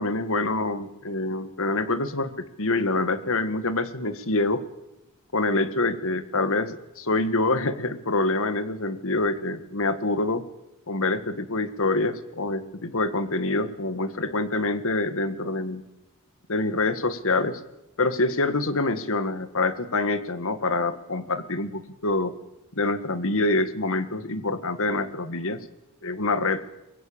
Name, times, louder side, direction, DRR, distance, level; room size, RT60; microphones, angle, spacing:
voice 1, 0.0-4.6 5.3-10.5 10.9-15.8 16.5-17.6 18.0-22.3 22.8-25.7 26.0-26.7, left 2 dB, 65° left, 12 dB, 1.8 m, -26 dB
23.5 x 21.5 x 8.8 m, 0.92 s
head